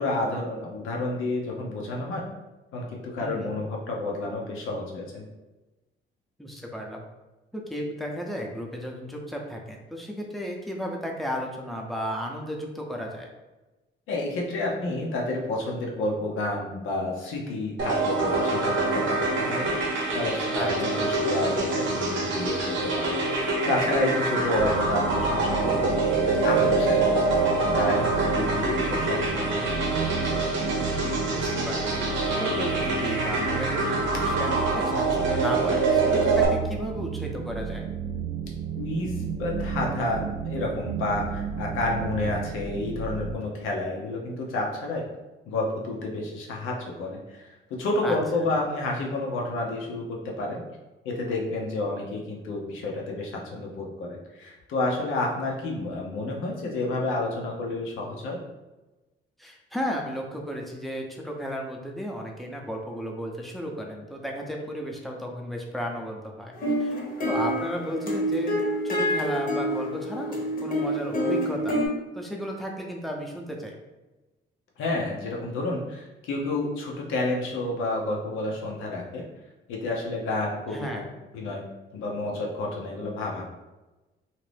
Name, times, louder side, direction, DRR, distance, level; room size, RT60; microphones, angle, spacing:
voice 1, 0.0-2.2 2.7-5.2 14.1-26.0 26.3-29.7 38.8-45.0 45.5-47.5 47.8-50.6 51.0-58.4 74.8-79.2 79.7-81.0 81.3-81.6 81.9-83.4, left 2 dB, 90° left, -1 dB, 0.7 m, -30 dB
voice 2, 3.2-3.6 6.4-7.0 7.5-13.3 20.5-21.0 30.9-37.8 48.0-48.5 59.4-66.5 66.8-67.0 67.2-68.6 68.8-71.8 72.1-73.7 80.7-81.1, equal, ahead, 0 dB, 0.6 m, -34 dB
sound 1, 17.8-36.4, right 3 dB, 70° right, 0.7 m, -25 dB
sound 2, 24.6-43.4, right 6 dB, 45° right, 0.4 m, -33 dB
sound 3, 66.5-71.9, equal, 45° left, 0.9 m, -27 dB
2.6 x 2.5 x 3.3 m, 1.1 s
cardioid pair, 90°, 20 cm